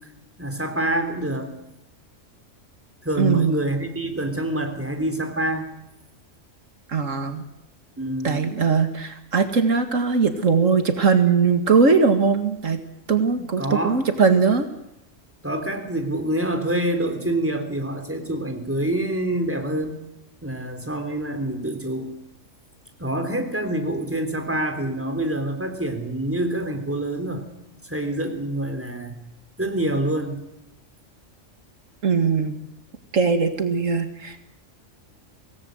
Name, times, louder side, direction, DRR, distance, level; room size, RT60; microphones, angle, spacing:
voice 1, 0.4-1.5 3.0-5.7 8.0-8.4 13.4-14.0 15.4-20.0 20.4-22.1 23.0-27.5 27.8-29.2 29.6-30.4, right 1 dB, 10° right, 5 dB, 3.6 m, -26 dB
voice 2, 3.2-3.5 6.9-7.4 8.2-12.8 13.1-14.7 32.0-32.6 33.1-34.4, right 5 dB, 80° right, 8 dB, 2.2 m, -20 dB
25.5 x 18.5 x 7.9 m, 0.88 s
omnidirectional pair, 1.3 m